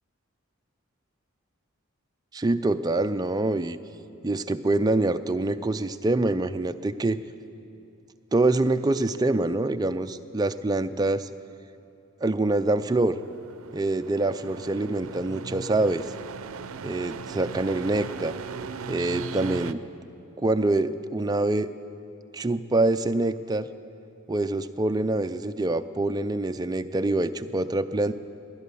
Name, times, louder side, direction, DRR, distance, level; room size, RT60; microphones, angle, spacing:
voice 1, 2.3-3.8 4.2-7.2 8.3-11.3 12.2-13.2 13.7-16.0 16.8-18.3 18.9-19.9 20.4-21.7 22.3-23.7 24.3-28.1, right 2 dB, 20° right, 9 dB, 0.4 m, -25 dB
sound 1, 13.1-19.7, right 5 dB, 75° right, 0.5 m, -38 dB
19.5 x 10.5 x 6.9 m, 2.7 s
head